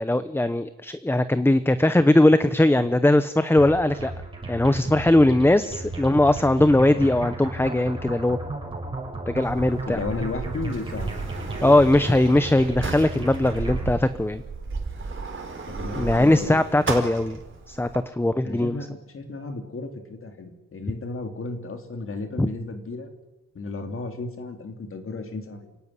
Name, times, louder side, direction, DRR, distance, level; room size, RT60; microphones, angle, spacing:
voice 1, 0.0-4.1 4.5-8.4 9.3-10.0 11.6-14.4 16.0-17.4 17.7-18.8 22.4-22.5, left 1 dB, 5° left, 12 dB, 0.8 m, -20 dB
sound 1, 3.6-13.9, right 2 dB, 15° right, 7.3 m, -34 dB
Sliding door, 9.4-18.0, right 4 dB, 35° right, 4.5 m, -34 dB
voice 2, 9.9-11.2 15.7-16.6 18.4-23.1 23.5-25.7, left 3 dB, 40° left, 6 dB, 3.4 m, -34 dB
28.5 x 17.0 x 9.9 m, 1.1 s
wide cardioid pair, 155°, 32 cm